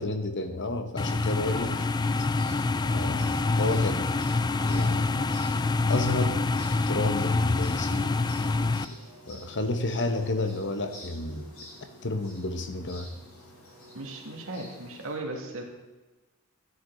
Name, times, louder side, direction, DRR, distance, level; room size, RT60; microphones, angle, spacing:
voice 1, 0.0-1.8 2.8-4.1 4.6-5.3 5.9-8.2 8.9-11.5 12.0-13.1, left 2 dB, 55° left, 7 dB, 1.1 m, -31 dB
sound 1, 1.0-8.8, left 3 dB, 20° left, 0.3 m, -26 dB
sound 2, 1.4-15.1, left 1 dB, 85° left, 4.9 m, -49 dB
voice 2, 13.9-15.6, right 2 dB, 65° right, 0 dB, 2.4 m, -37 dB
14.5 x 10.0 x 4.0 m, 1.2 s
head